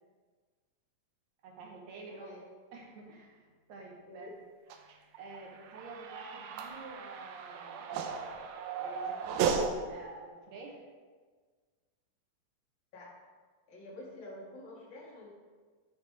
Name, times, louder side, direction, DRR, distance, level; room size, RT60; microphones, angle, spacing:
voice 1, 1.4-2.4 2.7-4.3 5.2-7.9 8.7-10.8, right 3 dB, 65° right, -1 dB, 1.9 m, -48 dB
voice 2, 2.0-2.5 4.1-4.3 12.9-13.1 13.7-15.3, left 1 dB, 35° left, -7 dB, 2.6 m, -48 dB
sound 1, 4.7-9.7, right 6 dB, 90° right, 2.5 m, -35 dB
13.5 x 4.9 x 3.4 m, 1.5 s
omnidirectional pair, 4.3 m